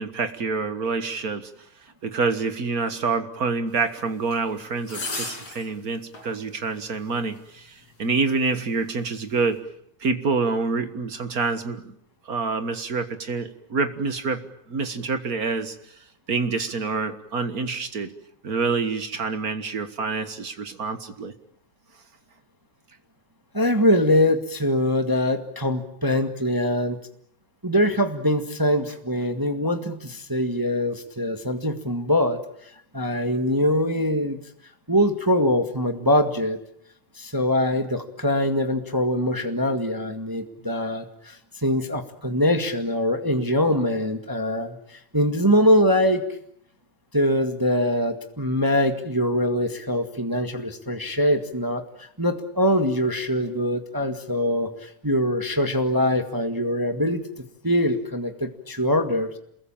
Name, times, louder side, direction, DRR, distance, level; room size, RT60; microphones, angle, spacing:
voice 1, 0.0-1.5 2.0-9.6 10.0-11.9 12.3-14.4 14.7-15.8 16.3-18.1 18.4-21.3, right 4 dB, 40° right, 9 dB, 1.5 m, -27 dB
sound 1, 4.3-4.4 4.9-5.7 6.1-6.3 7.4-7.5, left 3 dB, 55° left, 6.4 m, -32 dB
voice 2, 23.5-27.0 27.6-34.4 34.9-36.6 37.1-46.3 47.1-57.3 57.6-59.3, left 1 dB, 10° right, 6 dB, 1.0 m, -23 dB
28.0 x 22.0 x 8.9 m, 0.72 s
omnidirectional pair, 3.3 m